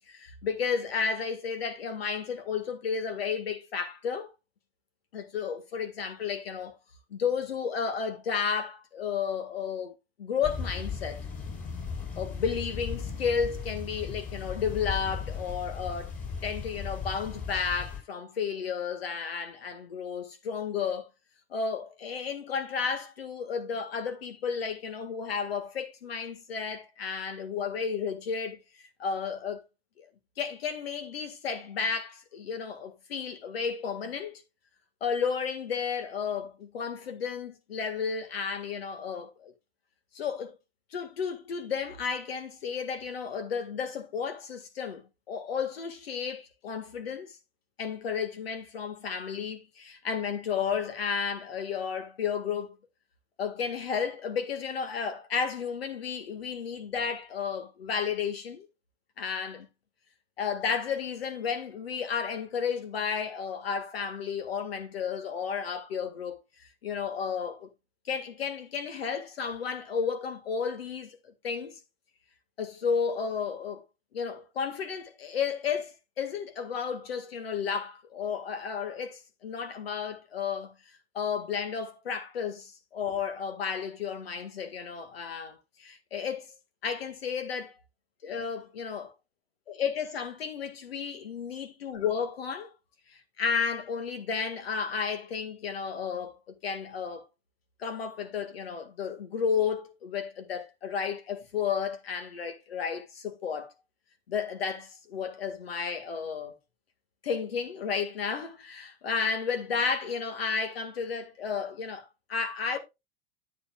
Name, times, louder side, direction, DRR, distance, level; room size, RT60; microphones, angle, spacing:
voice 1, 0.1-4.3 5.1-6.8 7.1-11.2 12.2-16.1 16.4-21.1 21.5-29.6 30.0-30.1 30.4-34.4 35.0-39.5 40.1-40.6 40.9-47.4 47.8-52.8 53.4-58.7 59.2-59.7 60.4-67.7 68.1-71.8 72.6-73.8 74.1-80.7 81.1-86.5 86.8-87.7 88.2-89.1 89.7-92.7 93.1-97.3 97.8-103.7 104.3-106.5 107.2-112.8, left 6 dB, 90° left, 1.7 m, -32 dB
sound 1, 10.4-18.0, left 6 dB, 25° left, 4.1 m, -37 dB
9.8 x 8.0 x 2.3 m
hypercardioid pair, 105°, 29 cm